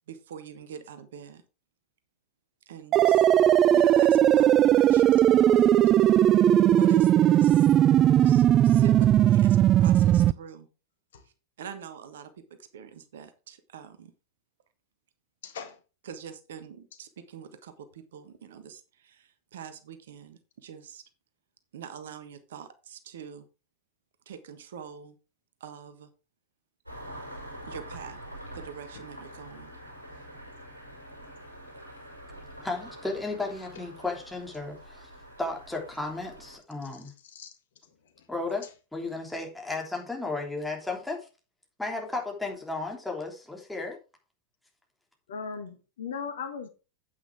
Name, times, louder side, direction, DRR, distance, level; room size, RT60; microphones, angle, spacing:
voice 1, 0.1-1.4 2.7-3.2 3.7-6.3 6.7-7.7 8.2-10.7 11.2-11.3 11.6-12.3 12.7-14.1 16.0-21.0 21.7-23.5 24.2-25.2 25.6-26.1 27.6-28.2 28.5-29.7 30.1-30.2, right 7 dB, 60° right, 1.3 m, -44 dB
sound 1, 2.9-10.3, right 11 dB, 30° right, 0.3 m, -19 dB
voice 2, 15.4-15.8 36.9-37.5 38.1-38.3 45.3-46.7, left 6 dB, 60° left, 1.6 m, -38 dB
Engine starting, 26.9-36.6, equal, 80° right, 5.8 m, -45 dB
voice 3, 32.6-35.1 35.4-37.1 38.3-38.6 38.9-41.3 41.8-44.0, left 3 dB, 5° left, 3.3 m, -34 dB
9.1 x 8.6 x 3.5 m
figure-of-eight pair, 90°, 0 cm